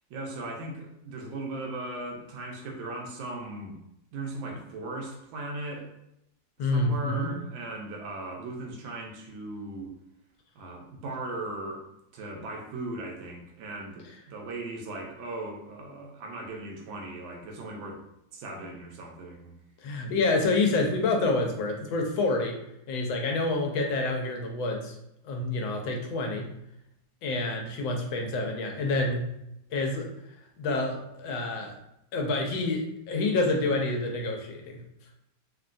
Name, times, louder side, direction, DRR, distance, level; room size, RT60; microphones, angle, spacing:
voice 1, 0.1-3.7 4.1-5.9 6.6-9.9 10.5-11.8 12.1-18.0 18.3-19.5, right 2 dB, 90° right, 1 dB, 1.4 m, -38 dB
voice 2, 6.6-7.3 19.8-22.6 22.9-24.9 25.2-26.5 27.2-29.3 29.7-30.1 30.6-31.7 32.1-34.8, left 2 dB, 90° left, 2 dB, 1.4 m, -28 dB
3.7 x 2.2 x 2.5 m, 0.81 s
omnidirectional pair, 2.0 m